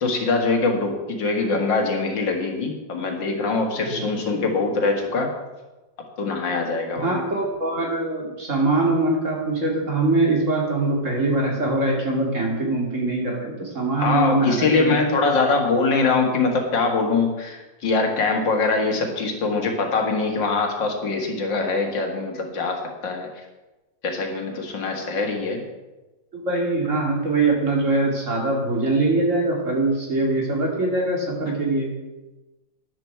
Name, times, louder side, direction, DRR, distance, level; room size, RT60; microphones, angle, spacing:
voice 1, 0.0-5.3 6.2-7.2 14.0-22.8 23.0-23.5 24.0-25.6, left 3 dB, 90° left, 2 dB, 2.6 m, -23 dB
voice 2, 6.9-14.9 26.3-31.9, right 2 dB, 40° right, -1 dB, 2.9 m, -23 dB
13.0 x 10.0 x 4.6 m, 1.1 s
omnidirectional pair, 1.9 m